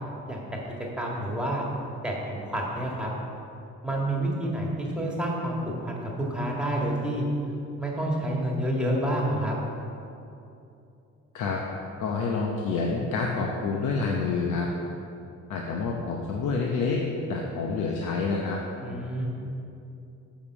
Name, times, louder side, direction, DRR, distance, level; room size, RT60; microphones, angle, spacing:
voice 1, 0.3-0.6 1.0-1.7 2.0-3.1 3.8-7.2 7.8-9.6 18.8-19.3, right 1 dB, 5° right, -3 dB, 1.8 m, -29 dB
voice 2, 12.0-14.7 15.5-17.0 17.3-18.6, left 4 dB, 85° left, -1 dB, 0.9 m, -28 dB
7.2 x 5.2 x 7.1 m, 2.7 s
cardioid pair, 90°, 30 cm